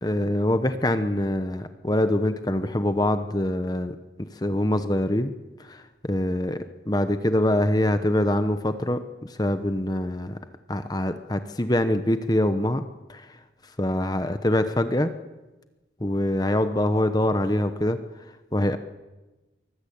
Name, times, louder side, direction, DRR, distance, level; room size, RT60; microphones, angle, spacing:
voice 1, 0.0-5.3 5.6-10.4 10.7-12.8 13.1-13.4 13.8-15.1 16.0-18.0 18.5-18.8, left 1 dB, 20° left, 9 dB, 1.0 m, -24 dB
23.5 x 19.5 x 8.7 m, 1.1 s
head